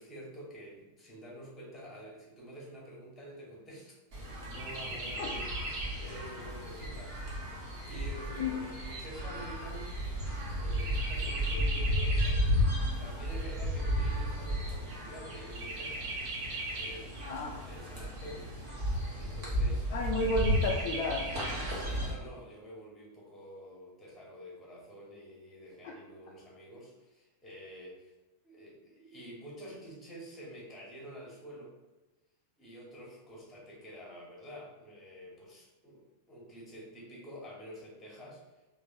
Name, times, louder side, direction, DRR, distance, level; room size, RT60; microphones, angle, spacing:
voice 1, 0.0-7.6 7.9-10.0 10.6-12.6 13.0-16.2 16.7-18.6 19.2-19.9 21.6-28.1 28.4-31.7 32.6-38.4, equal, 15° left, -4 dB, 1.2 m, -48 dB
Chirp tweet, 4.1-22.1, equal, 45° right, 1.2 m, -33 dB
voice 2, 17.2-17.6 19.9-21.3 25.8-25.9, left 2 dB, 50° left, -1 dB, 0.4 m, -32 dB
3.4 x 2.0 x 3.6 m, 1.1 s
figure-of-eight pair, 90°, 0 cm